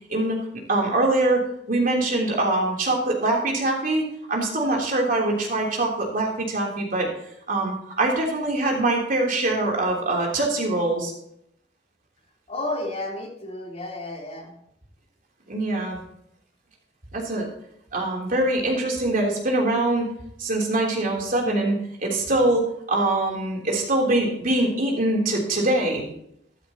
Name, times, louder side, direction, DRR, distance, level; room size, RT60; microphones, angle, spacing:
voice 1, 0.1-0.4 0.7-7.1 7.5-11.1 15.5-16.0 17.1-17.5 17.9-20.1 20.4-21.7 22.0-26.1, right 2 dB, 50° right, -1 dB, 3.4 m, -23 dB
voice 2, 12.5-14.5, left 2 dB, 35° left, -2 dB, 3.5 m, -32 dB
13.5 x 12.0 x 3.0 m, 0.73 s
head